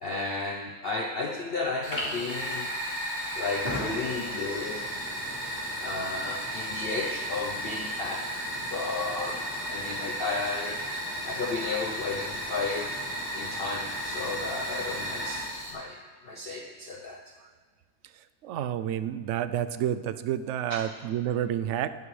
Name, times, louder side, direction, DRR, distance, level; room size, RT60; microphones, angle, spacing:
voice 1, 0.0-2.7 3.4-4.9 5.8-8.3 8.6-9.4 9.7-10.8 11.2-13.0 13.3-17.3 20.7-20.9, left 3 dB, 50° left, 2 dB, 0.8 m, -33 dB
Fire, 1.8-15.7, equal, 35° left, 3.3 m, -34 dB
voice 2, 18.4-21.9, right 10 dB, 70° right, 12 dB, 0.7 m, -29 dB
18.5 x 11.5 x 3.3 m, 1.5 s
omnidirectional pair, 1.7 m